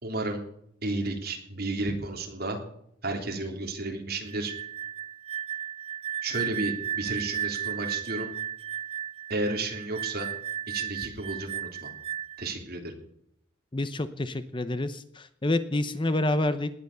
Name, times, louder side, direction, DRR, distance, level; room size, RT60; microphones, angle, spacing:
voice 1, 0.0-0.4 0.8-2.6 3.0-4.5 6.2-8.3 9.3-10.3 10.7-11.9 12.4-12.9, right 2 dB, 50° right, 2 dB, 3.6 m, -32 dB
sound 1, 4.3-12.5, right 10 dB, 30° right, 0.6 m, -34 dB
voice 2, 13.7-16.7, left 2 dB, 25° left, 11 dB, 0.8 m, -28 dB
19.0 x 10.5 x 6.9 m, 0.71 s
head